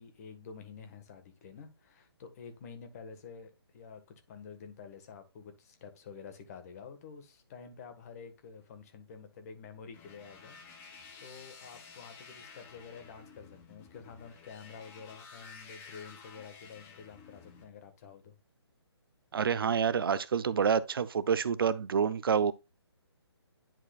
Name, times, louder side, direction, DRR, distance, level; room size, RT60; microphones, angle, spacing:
voice 1, 0.0-4.0 4.3-10.9 11.2-18.3, left 6 dB, 35° left, 1.6 m, -49 dB
sound 1, 9.9-17.6, left 5 dB, 15° left, 1.1 m, -52 dB
voice 2, 19.3-22.5, right 7 dB, 55° right, 0.6 m, -28 dB
10.5 x 4.8 x 2.4 m
figure-of-eight pair, 145°, 14 cm